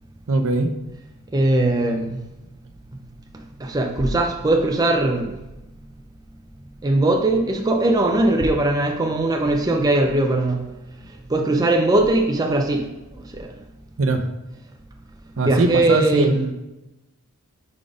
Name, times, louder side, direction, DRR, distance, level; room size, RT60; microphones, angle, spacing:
voice 1, 0.3-0.7 14.0-14.3 15.4-16.5, right 2 dB, 60° right, 0.6 m, -21 dB
voice 2, 1.3-2.2 3.6-5.3 6.8-10.6 11.3-12.9 13.1-13.5 15.4-16.4, right 2 dB, 15° right, 0.4 m, -20 dB
4.9 x 4.0 x 5.0 m
head